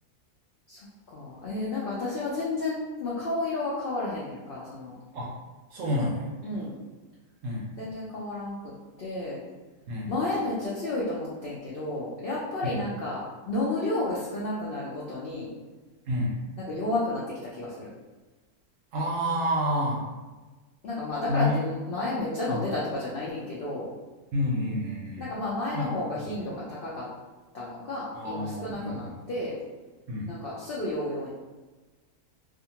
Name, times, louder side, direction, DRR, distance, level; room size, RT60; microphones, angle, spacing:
voice 1, 0.7-4.9 6.4-6.8 7.8-8.6 9.0-9.4 10.1-15.5 16.7-17.9 20.8-23.9 25.2-27.1 27.5-29.6 30.3-31.3, left 2 dB, 85° left, -6 dB, 0.5 m, -32 dB
voice 2, 5.7-6.3 7.4-7.7 9.9-10.1 12.6-12.8 16.1-16.4 18.9-20.1 21.3-21.6 22.5-22.7 24.3-25.3 25.7-25.9 26.2-26.5 28.1-29.2 30.1-30.3, left 1 dB, 65° right, -3 dB, 0.9 m, -29 dB
2.5 x 2.5 x 2.8 m, 1.2 s
omnidirectional pair, 1.6 m